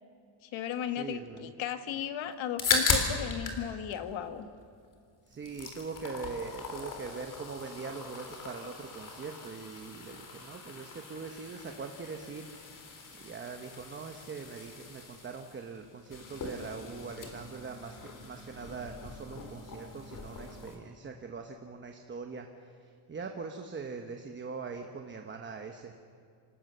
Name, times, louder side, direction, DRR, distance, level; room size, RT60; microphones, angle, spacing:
voice 1, 0.4-4.5, left 9 dB, 75° left, 10 dB, 1.5 m, -35 dB
voice 2, 0.9-1.5 5.3-25.9, right 4 dB, 25° right, 4 dB, 1.0 m, -42 dB
sound 1, 2.3-3.6 3.9-4.9 5.3-20.8, left 4 dB, 40° left, 3.4 m, -38 dB
26.5 x 17.5 x 6.8 m, 2.4 s
cardioid pair, 170°, 46 cm